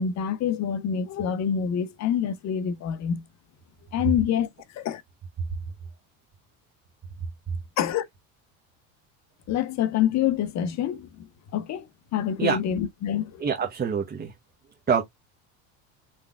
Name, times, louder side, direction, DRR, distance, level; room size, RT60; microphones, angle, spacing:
voice 1, 0.0-3.2 3.9-4.5 4.7-5.0 7.8-8.0 9.5-11.3 11.5-13.4, left 9 dB, 45° left, 0.9 m, -26 dB
voice 2, 13.4-14.3 14.9-15.0, right 7 dB, 25° right, 1.1 m, -25 dB
5.8 x 3.4 x 2.4 m
supercardioid pair, 110°, 39 cm